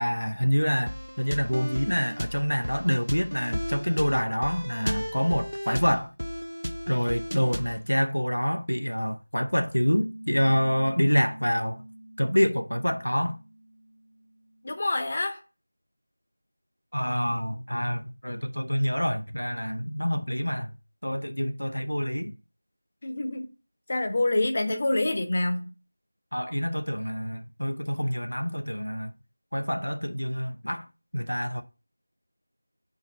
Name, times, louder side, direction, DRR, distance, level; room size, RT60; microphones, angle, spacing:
voice 1, 0.0-6.1 6.9-11.8 12.2-13.4 16.9-20.7 21.0-22.4 26.3-29.1 29.5-30.9 31.1-31.6, equal, 80° left, 0.7 m, -27 dB
sound 1, 0.9-7.8, equal, 85° right, 0.6 m, -34 dB
Piano, 9.9-15.0, right 1 dB, 30° right, 1.1 m, -47 dB
voice 2, 14.6-15.4 23.0-23.5 23.9-25.7, left 2 dB, 30° left, 0.9 m, -26 dB
5.2 x 4.7 x 6.3 m
figure-of-eight pair, 170°, 0 cm